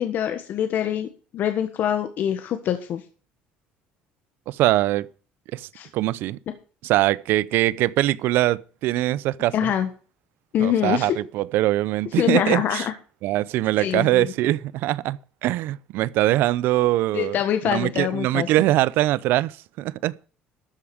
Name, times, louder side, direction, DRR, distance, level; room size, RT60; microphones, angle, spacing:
voice 1, 0.0-3.0 5.7-5.9 9.5-9.9 10.5-11.2 12.2-12.9 13.8-14.3 17.1-18.5, left 10 dB, 55° left, 1.4 m, -24 dB
voice 2, 4.5-5.1 5.5-5.7 5.9-6.4 6.8-9.7 10.6-12.8 13.2-17.4 17.7-20.1, right 16 dB, 70° right, 0.6 m, -22 dB
13.0 x 5.0 x 8.7 m
cardioid pair, 100°, 4 cm